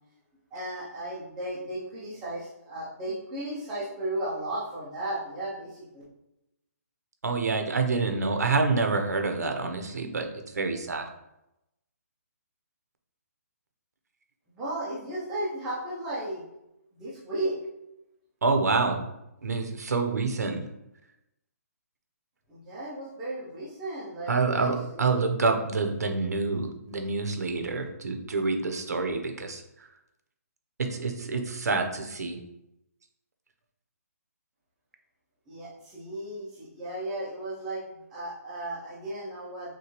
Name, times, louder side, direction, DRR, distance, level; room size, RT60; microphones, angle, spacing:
voice 1, 0.5-6.0 14.5-16.4 16.9-17.6 22.5-25.0 35.5-39.7, right 1 dB, 5° right, -9 dB, 0.4 m, -35 dB
voice 2, 7.2-10.3 10.5-11.1 18.4-19.0 19.4-20.6 24.3-29.6 30.8-32.4, right 4 dB, 80° right, 5 dB, 0.8 m, -27 dB
6.0 x 2.2 x 3.0 m, 0.88 s
hypercardioid pair, 180°, 9 cm